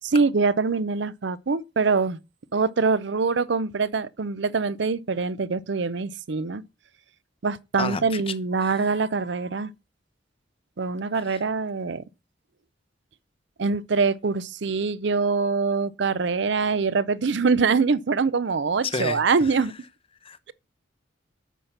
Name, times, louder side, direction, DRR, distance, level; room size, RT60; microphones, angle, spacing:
voice 1, 0.0-2.2 2.5-6.6 7.4-9.7 10.8-12.0 13.6-19.7, right 4 dB, 65° right, 0.5 m, -24 dB
voice 2, 7.8-8.2 8.6-8.7 18.9-19.2 20.2-20.5, left 4 dB, 30° left, 0.8 m, -30 dB
8.2 x 5.7 x 5.9 m
head